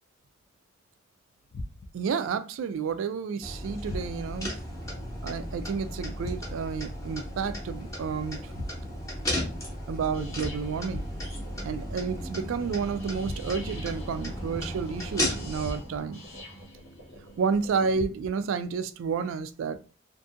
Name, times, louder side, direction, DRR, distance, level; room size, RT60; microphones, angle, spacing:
sound 1, 1.5-2.1 3.9-4.5 6.2-6.8 8.5-9.2 10.9-11.5 13.2-13.9 15.6-16.2 17.9-18.5, left 1 dB, 45° left, 0.3 m, -40 dB
voice 1, 1.9-4.5 5.2-8.4 9.9-11.0 11.6-16.2 17.4-19.8, right 5 dB, 75° right, 0.3 m, -30 dB
sound 2, 3.4-15.8, equal, 15° left, 0.7 m, -35 dB
sound 3, 10.1-18.0, equal, 90° left, 1.1 m, -43 dB
2.6 x 2.5 x 2.4 m
head